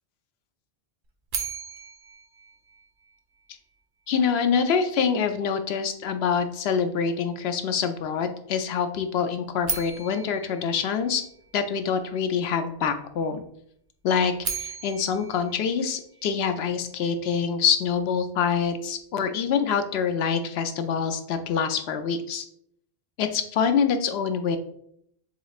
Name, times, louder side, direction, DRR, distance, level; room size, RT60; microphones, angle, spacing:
sound 1, 1.3-3.4 9.6-11.8 14.2-16.6, right 5 dB, 60° right, 0.7 m, -36 dB
voice 1, 4.1-11.2 11.5-13.4 14.0-22.4 23.2-24.6, left 6 dB, 80° left, 8 dB, 0.8 m, -25 dB
7.0 x 3.1 x 2.4 m, 0.70 s
omnidirectional pair, 1.1 m